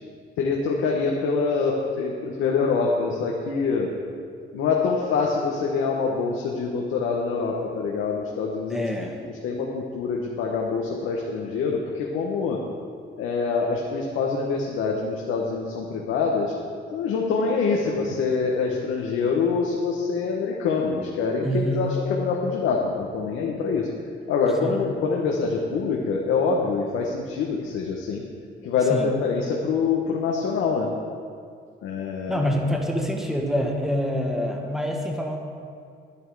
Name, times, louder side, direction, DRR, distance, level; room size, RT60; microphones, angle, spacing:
voice 1, 0.4-3.9 4.5-8.9 9.2-12.6 13.2-16.5 16.9-23.9 24.3-28.2 28.6-30.9 31.8-32.5, left 4 dB, 90° left, -1 dB, 1.1 m, -25 dB
voice 2, 8.7-9.2 21.4-21.8 24.6-24.8 28.9-29.1 32.3-35.4, equal, ahead, 1 dB, 1.6 m, -26 dB
10.5 x 9.9 x 4.7 m, 2.2 s
cardioid pair, 90°, 20 cm